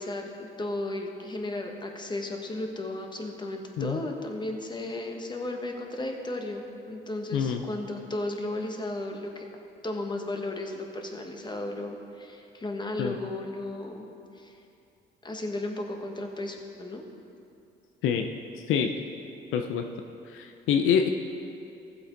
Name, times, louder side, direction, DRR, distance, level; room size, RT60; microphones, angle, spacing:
voice 1, 0.0-9.5 9.8-14.0 14.3-14.6 15.2-17.0, left 2 dB, 20° left, 3 dB, 1.3 m, -34 dB
voice 2, 19.5-19.8 20.3-21.1, left 7 dB, 90° left, 5 dB, 0.6 m, -25 dB
15.0 x 7.8 x 3.9 m, 2.7 s
cardioid pair, 90°, 20 cm